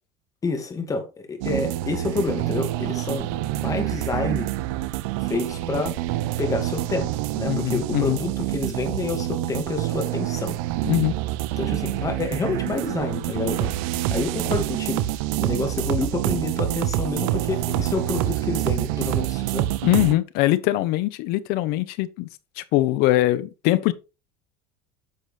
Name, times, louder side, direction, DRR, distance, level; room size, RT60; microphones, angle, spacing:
voice 1, 0.4-4.5 5.2-6.0 6.4-10.6 11.6-13.7 14.1-15.1 15.4-19.7, left 3 dB, 20° left, 2.3 m, -28 dB
sound 1, 1.4-20.2, right 15 dB, 80° right, 0.8 m, -27 dB
voice 2, 7.5-8.2 10.8-11.2 19.8-22.3 22.6-23.9, left 16 dB, 65° left, 1.0 m, -22 dB
9.8 x 6.7 x 3.5 m
cardioid pair, 140°, 17 cm